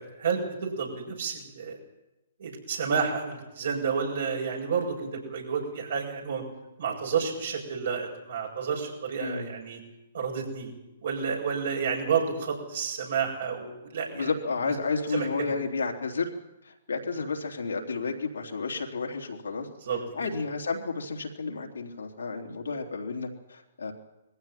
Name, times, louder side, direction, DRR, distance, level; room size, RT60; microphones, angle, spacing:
voice 1, 0.0-1.8 2.4-6.4 6.8-9.8 10.1-10.7 11.0-14.3 14.6-14.7 15.1-15.5 19.8-20.3, right 6 dB, 65° right, 0 dB, 7.5 m, -30 dB
voice 2, 9.2-9.5 14.1-16.3 16.6-19.7 20.1-23.9, left 4 dB, 80° left, 1 dB, 3.4 m, -31 dB
21.5 x 15.5 x 9.3 m, 0.98 s
figure-of-eight pair, 130°, 0 cm